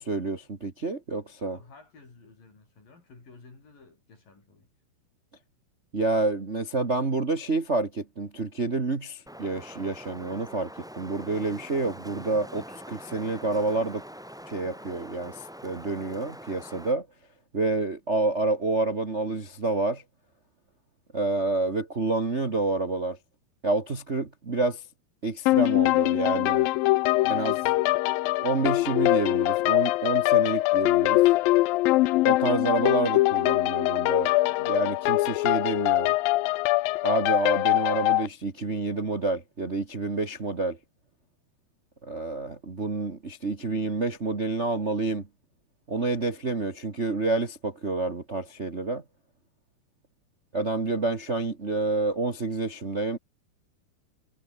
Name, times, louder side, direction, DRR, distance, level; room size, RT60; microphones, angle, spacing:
voice 1, 0.0-1.6 5.9-14.0 14.5-17.1 17.5-20.0 21.1-23.2 23.6-24.9 25.2-26.7 27.3-27.5 28.4-31.2 32.2-36.1 37.0-40.8 42.0-45.3 45.9-49.0 50.5-53.2, right 3 dB, 75° right, 0.6 m, -28 dB
voice 2, 1.5-4.7 27.1-27.9, left 3 dB, 55° left, 9.7 m, -52 dB
Wind, 9.3-16.9, equal, ahead, 2.6 m, -44 dB
sound 1, 25.5-38.3, left 19 dB, 80° left, 2.2 m, -23 dB
omnidirectional pair, 4.7 m